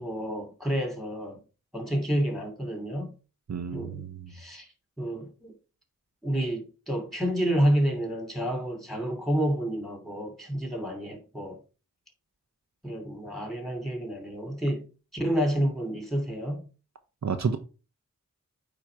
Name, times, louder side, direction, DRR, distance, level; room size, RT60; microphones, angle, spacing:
voice 1, 0.0-1.4 1.7-3.1 3.7-4.0 4.3-4.7 5.0-5.5 6.2-11.6 12.8-14.9 15.1-16.7, equal, ahead, 2.7 m, -29 dB
voice 2, 3.5-4.3 17.2-17.6, right 6 dB, 60° right, 0.8 m, -30 dB
8.8 x 3.0 x 4.5 m
cardioid pair, 50°, 31 cm